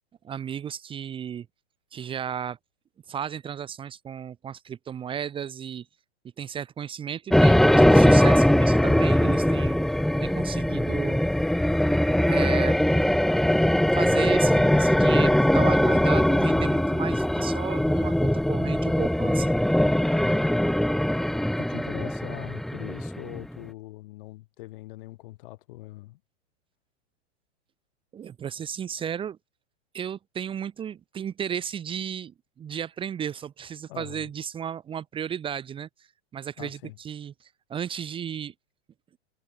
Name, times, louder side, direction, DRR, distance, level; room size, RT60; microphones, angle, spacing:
voice 1, 0.2-1.5 1.9-2.6 3.1-5.9 6.4-9.8 10.2-11.2 12.1-12.8 13.9-19.5 28.1-29.4 29.9-36.1 36.3-38.5, right 8 dB, 15° right, 2.0 m, -34 dB
sound 1, 7.3-23.5, left 1 dB, ahead, 1.0 m, -21 dB
voice 2, 21.6-26.2 33.9-34.3 36.6-37.0, left 18 dB, 50° left, 7.3 m, -42 dB
supercardioid pair, 155°, 34 cm